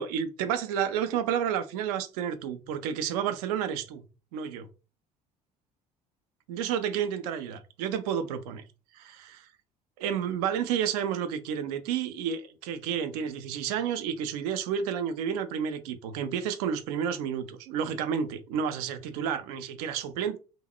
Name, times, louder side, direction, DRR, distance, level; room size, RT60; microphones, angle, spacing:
voice 1, 0.0-4.0 4.3-4.7 6.5-8.6 8.9-9.5 10.0-20.4, right 8 dB, 70° right, 0.4 m, -31 dB
2.9 x 2.0 x 2.3 m
hypercardioid pair, 60°, 21 cm